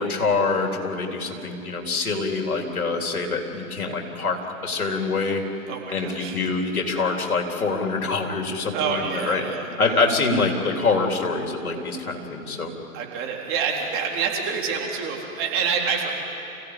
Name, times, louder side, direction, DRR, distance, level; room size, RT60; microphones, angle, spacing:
voice 1, 0.0-5.4 5.9-9.4 9.8-12.7, left 3 dB, 75° left, 2 dB, 3.7 m, -25 dB
voice 2, 5.7-6.4 8.7-9.7 12.9-16.1, right 6 dB, 30° right, -1 dB, 4.0 m, -27 dB
28.0 x 16.5 x 9.8 m, 2.9 s
figure-of-eight pair, 120°, 44 cm